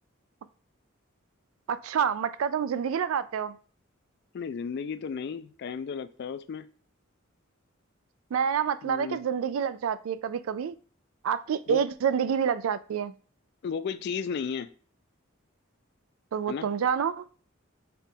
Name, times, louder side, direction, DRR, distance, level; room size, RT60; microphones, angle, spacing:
voice 1, 1.7-3.6 8.3-10.7 11.2-13.1 16.3-17.2, right 7 dB, 75° right, 14 dB, 0.3 m, -28 dB
voice 2, 4.3-6.7 8.8-9.2 11.7-11.8 13.6-14.7 16.5-16.7, left 6 dB, 55° left, 13 dB, 0.3 m, -34 dB
5.6 x 2.4 x 3.6 m, 0.40 s
head